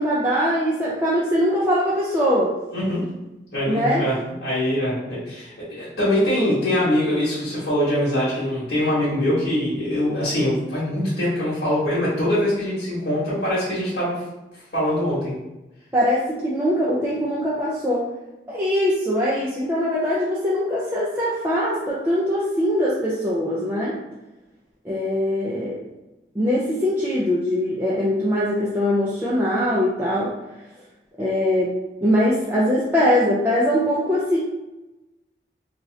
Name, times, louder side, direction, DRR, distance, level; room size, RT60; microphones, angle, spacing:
voice 1, 0.0-2.5 3.7-4.0 15.9-18.1 18.5-24.0 24.8-25.8 26.4-30.3 31.2-34.4, equal, 10° right, -7 dB, 0.3 m, -22 dB
voice 2, 2.7-3.0 3.5-4.2 4.4-14.2 14.7-15.3, left 1 dB, 70° left, -10 dB, 1.1 m, -23 dB
2.7 x 2.4 x 3.1 m, 1.0 s
head